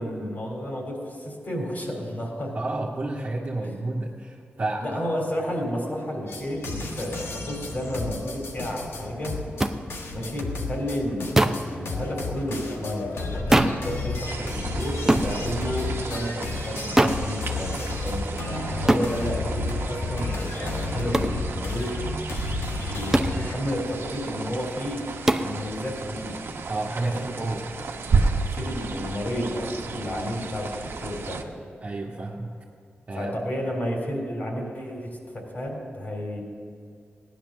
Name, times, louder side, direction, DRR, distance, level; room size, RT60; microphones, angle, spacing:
voice 1, 0.0-2.5 3.6-3.7 4.8-9.4 10.1-22.1 22.9-25.1 25.4-26.4 27.0-27.3 28.5-31.4 33.1-36.4, equal, 45° left, 0 dB, 3.6 m, -31 dB
voice 2, 2.5-5.0 26.7-27.7 31.8-32.5 33.1-33.3, right 2 dB, 40° right, -5 dB, 1.6 m, -30 dB
sound 1, 6.3-23.5, left 3 dB, 90° left, 1.5 m, -32 dB
sound 2, 9.6-9.8 11.4-11.7 13.5-13.9 15.1-15.3 17.0-17.3 18.9-19.1 21.1-21.4 23.1-23.4 25.3-25.5, right 1 dB, 10° right, 0.7 m, -20 dB
sound 3, 14.2-31.4, right 4 dB, 80° right, 1.1 m, -33 dB
16.5 x 10.5 x 6.6 m, 2.3 s
wide cardioid pair, 100°, 4 cm